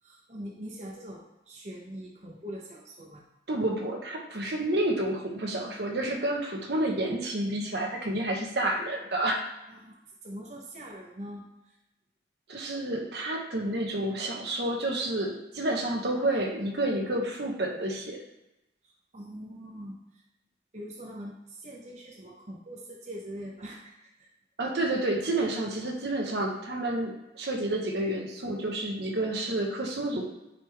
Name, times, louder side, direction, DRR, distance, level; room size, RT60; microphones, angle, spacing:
voice 1, 0.0-3.2 9.7-10.0 10.2-11.8 18.8-20.2 20.7-24.3, equal, 40° right, -2 dB, 0.9 m, -43 dB
voice 2, 3.5-9.4 12.5-18.2 24.6-30.3, right 1 dB, 70° right, 1 dB, 1.1 m, -29 dB
9.8 x 3.6 x 3.4 m, 0.92 s
head